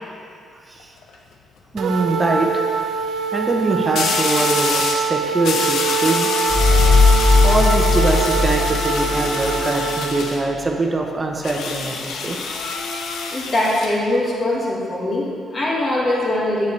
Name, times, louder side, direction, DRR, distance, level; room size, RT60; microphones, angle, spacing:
sound 1, 0.8-1.1 3.9-5.1 5.4-10.4 11.4-14.0, left 4 dB, 75° left, 0.6 m, -26 dB
voice 1, 1.7-2.5 3.3-6.3 7.4-12.4, right 2 dB, 25° right, 2 dB, 0.8 m, -23 dB
sound 2, 1.8-10.3, right 5 dB, 70° right, 0.5 m, -23 dB
sound 3, 6.5-9.9, left 3 dB, 20° left, 0.8 m, -17 dB
voice 2, 13.3-16.7, left 1 dB, 35° left, -4 dB, 1.8 m, -22 dB
7.9 x 6.9 x 3.2 m, 2.3 s
cardioid pair, 90°, 0 cm